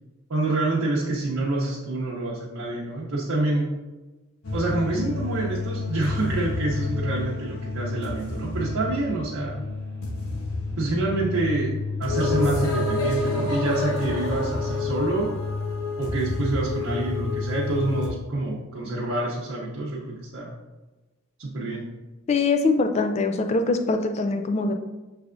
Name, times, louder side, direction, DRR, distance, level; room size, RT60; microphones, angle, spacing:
voice 1, 0.3-3.7 4.5-9.6 10.8-15.3 16.0-20.5 21.4-21.8, right 2 dB, 80° right, -4 dB, 0.7 m, -27 dB
sound 1, 4.4-18.1, left 3 dB, 85° left, 0.9 m, -29 dB
voice 2, 22.3-24.7, left 3 dB, 30° left, 6 dB, 0.3 m, -23 dB
6.0 x 3.3 x 2.5 m, 1.1 s
head